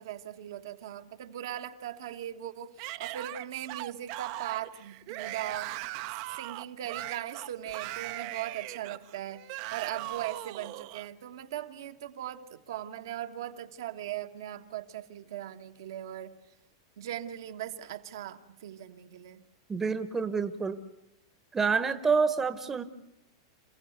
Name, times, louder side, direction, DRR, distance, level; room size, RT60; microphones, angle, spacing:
voice 1, 0.0-5.8 6.4-16.4 17.0-19.4, right 11 dB, 75° right, 1.5 m, -39 dB
Yell / Screaming, 2.8-11.1, right 17 dB, 55° right, 0.7 m, -39 dB
voice 2, 19.7-20.8 21.5-22.8, right 5 dB, 15° right, 1.0 m, -27 dB
28.0 x 15.5 x 8.1 m
hypercardioid pair, 125°, 2 cm